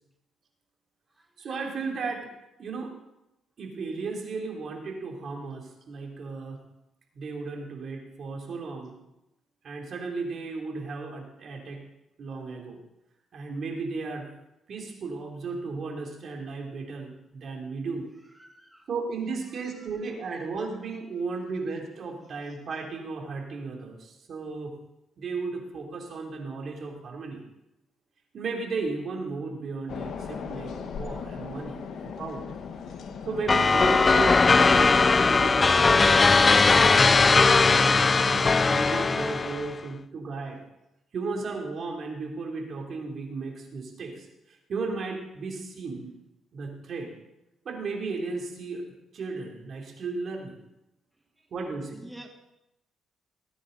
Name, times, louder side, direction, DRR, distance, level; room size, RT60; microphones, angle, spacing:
voice 1, 1.4-2.3 2.6-2.9 3.6-6.6 7.1-8.9 9.6-11.8 12.2-12.8 13.3-14.3 14.7-18.1 18.9-24.7 25.2-27.4 28.3-32.4 33.2-36.4 36.7-40.6 41.1-46.1 46.5-47.1 47.6-48.8 49.1-50.6 51.5-52.0, right 4 dB, 55° right, 1 dB, 3.0 m, -35 dB
voice 2, 18.4-18.9 51.9-52.3, right 1 dB, 5° right, 3 dB, 1.5 m, -46 dB
sound 1, 29.9-36.1, left 6 dB, 65° left, 1.2 m, -39 dB
sound 2, 33.5-39.7, left 4 dB, 30° left, 0.4 m, -19 dB
18.0 x 9.5 x 4.0 m, 0.88 s
cardioid pair, 90°, 0 cm